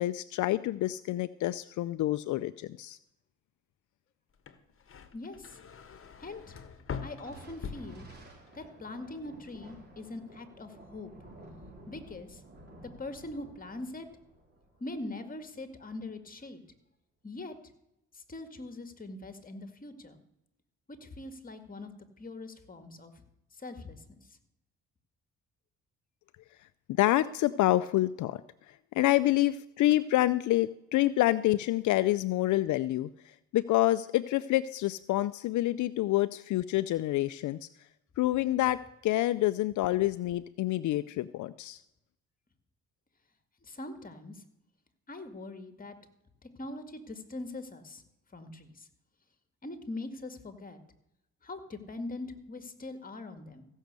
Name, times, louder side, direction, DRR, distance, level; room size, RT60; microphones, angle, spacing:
voice 1, 0.0-3.0 27.0-28.4 28.7-37.7 38.2-41.8, left 15 dB, 75° left, 14 dB, 0.5 m, -27 dB
sound 1, 4.3-8.6 8.9-9.5, left 6 dB, 45° left, 1.4 m, -43 dB
voice 2, 5.1-5.6 6.2-6.6 7.0-8.1 8.5-11.1 11.9-12.4 13.0-14.1 14.8-16.6 17.2-17.6 18.1-20.2 20.9-21.9 22.2-23.1 23.6-24.0 43.6-44.4 45.1-46.0 46.4-48.0 48.3-48.9 49.6-50.8 51.4-53.7, left 2 dB, 25° left, 8 dB, 2.0 m, -42 dB
Thunder, 7.2-15.9, right 2 dB, 35° right, 4.5 m, -53 dB
15.5 x 6.4 x 8.1 m, 0.85 s
cardioid pair, 80°, 31 cm